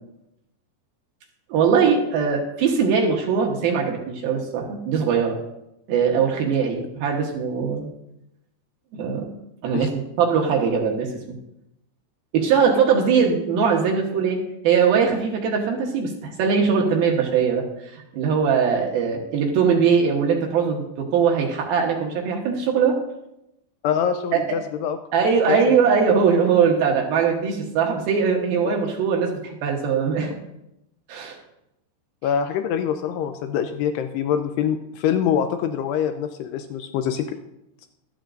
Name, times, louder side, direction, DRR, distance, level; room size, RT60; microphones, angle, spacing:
voice 1, 1.5-5.4 5.9-7.9 8.9-9.3 9.6-9.9 10.2-11.1 12.3-14.4 14.6-23.0 24.3-24.6 25.1-30.4 31.1-31.4, right 6 dB, 70° right, 0 dB, 2.7 m, -21 dB
voice 2, 23.8-25.0 25.5-25.6 28.7-28.8 32.2-37.4, left 8 dB, 80° left, 8 dB, 2.5 m, -24 dB
13.5 x 12.5 x 2.6 m, 0.86 s
omnidirectional pair, 5.0 m